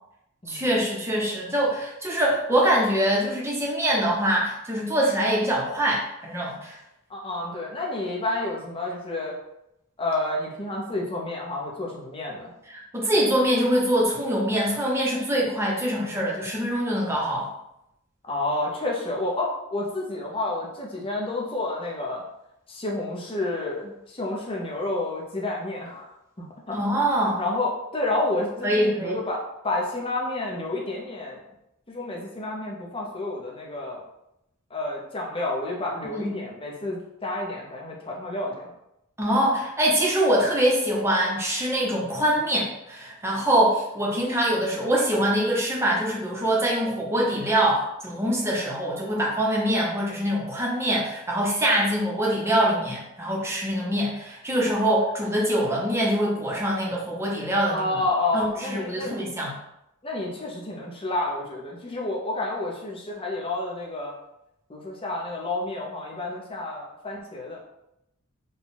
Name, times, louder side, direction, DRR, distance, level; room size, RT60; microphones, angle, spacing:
voice 1, 0.5-6.8 12.7-17.5 26.7-27.4 28.6-29.2 36.0-36.4 39.2-57.9 58.3-59.6, right 1 dB, 15° right, -3 dB, 0.9 m, -24 dB
voice 2, 7.1-9.3 10.0-12.5 18.2-22.2 22.7-26.1 26.4-26.8 27.4-31.4 31.9-34.0 34.7-38.7 57.6-59.2 60.0-64.1 64.7-67.6, left 2 dB, 25° left, -2 dB, 0.9 m, -30 dB
4.0 x 2.4 x 4.0 m, 0.84 s
head